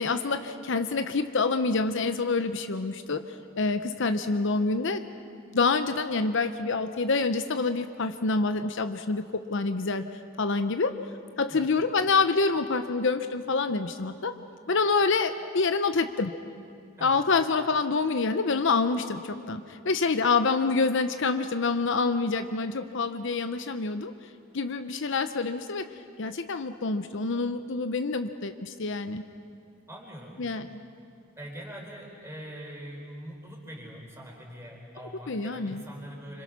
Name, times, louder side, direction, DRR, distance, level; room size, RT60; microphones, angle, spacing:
voice 1, 0.0-3.2 3.6-5.0 5.5-10.0 10.4-10.9 11.4-14.4 14.7-16.3 17.0-24.1 24.5-25.9 26.2-29.2 30.4-30.8 35.3-35.8, left 4 dB, 60° left, 9 dB, 0.8 m, -27 dB
voice 2, 29.9-30.5 31.4-36.4, equal, 15° right, -1 dB, 4.2 m, -43 dB
26.5 x 26.0 x 6.0 m, 2.3 s
head